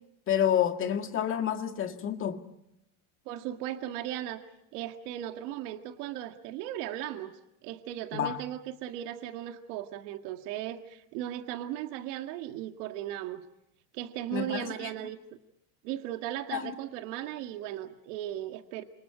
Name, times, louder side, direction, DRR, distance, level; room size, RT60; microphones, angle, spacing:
voice 1, 0.3-2.4 8.1-8.4 14.3-14.9 16.5-16.7, left 9 dB, 25° left, 2.0 m, -29 dB
voice 2, 3.3-4.4 4.7-7.4 7.6-13.4 13.9-15.2 15.8-18.8, right 12 dB, 80° right, 2.0 m, -37 dB
28.5 x 27.5 x 5.1 m
cardioid pair, 165°, 46 cm